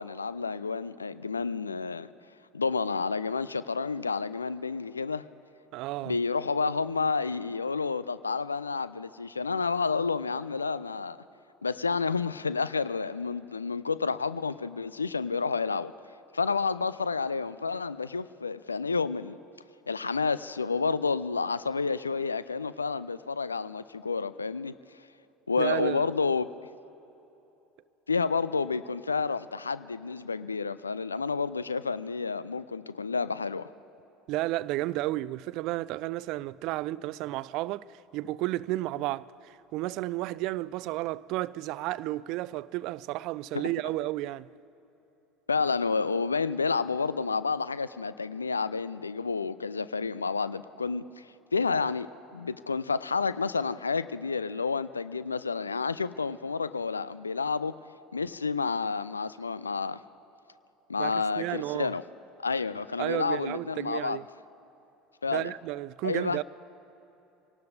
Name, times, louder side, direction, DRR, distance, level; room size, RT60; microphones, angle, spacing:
voice 1, 0.0-2.1 2.5-5.2 6.0-11.2 11.6-15.9 16.3-19.4 19.9-24.7 25.5-26.5 28.1-33.7 43.5-43.6 45.5-51.3 51.5-57.7 58.1-60.0 60.9-62.0 62.4-64.2 65.2-65.5 66.0-66.4, left 4 dB, 80° left, 0.3 m, -30 dB
voice 2, 5.7-6.2 25.6-26.1 34.3-37.8 38.1-44.5 61.0-61.9 63.0-64.3 65.3-66.4, right 17 dB, 50° right, 0.3 m, -32 dB
26.0 x 18.0 x 2.6 m
figure-of-eight pair, 70°, 0 cm